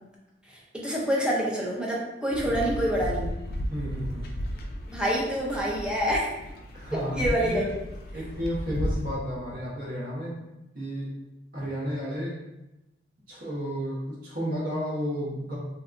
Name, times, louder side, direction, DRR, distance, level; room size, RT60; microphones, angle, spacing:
voice 1, 0.5-3.3 4.9-6.3 6.9-7.7, equal, 5° right, -5 dB, 0.5 m, -27 dB
sound 1, 2.3-9.1, equal, 55° left, 0.3 m, -34 dB
voice 2, 3.7-4.3 6.7-7.8 8.1-10.4 10.7-11.1 11.5-12.4 13.3-15.5, equal, 50° right, -7 dB, 0.8 m, -32 dB
2.7 x 2.2 x 2.4 m, 0.96 s
head